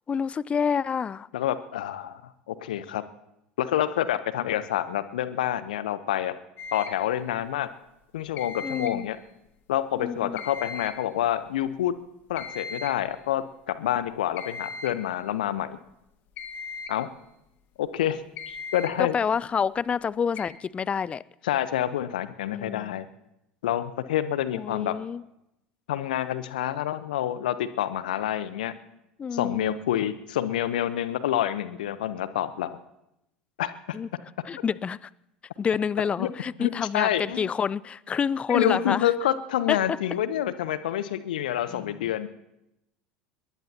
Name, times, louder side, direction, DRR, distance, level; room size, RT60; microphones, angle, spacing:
voice 1, 0.1-1.3 8.6-9.1 10.0-10.4 19.0-21.2 22.5-23.0 24.5-25.2 29.2-29.8 33.9-34.1 34.5-35.1 35.6-39.1 39.7-39.8 41.7-42.0, left 6 dB, 25° left, 0.5 m, -28 dB
voice 2, 1.3-3.0 3.6-6.4 6.7-7.7 8.1-9.2 9.7-12.0 12.3-15.8 16.9-17.1 17.8-19.2 21.4-23.1 23.6-25.0 25.9-28.7 29.3-32.8 33.6-34.0 36.2-36.3 36.6-37.5 38.5-42.3, left 11 dB, 70° left, 1.0 m, -28 dB
sound 1, 6.6-7.0 8.4-9.1 10.4-11.1 12.4-13.1 14.4-15.0 16.4-17.0 18.4-19.0 20.4-20.5, left 4 dB, 45° left, 2.1 m, -38 dB
23.5 x 21.0 x 3.0 m
figure-of-eight pair, 75°, 5 cm